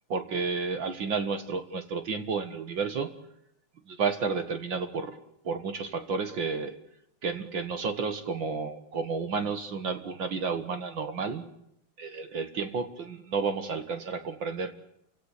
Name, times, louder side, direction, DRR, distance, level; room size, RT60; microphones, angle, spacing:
voice 1, 0.1-3.1 3.9-5.2 5.4-6.8 7.2-11.4 12.0-14.7, right 5 dB, 45° right, 9 dB, 1.8 m, -31 dB
29.5 x 16.5 x 8.3 m, 0.77 s
omnidirectional pair, 3.5 m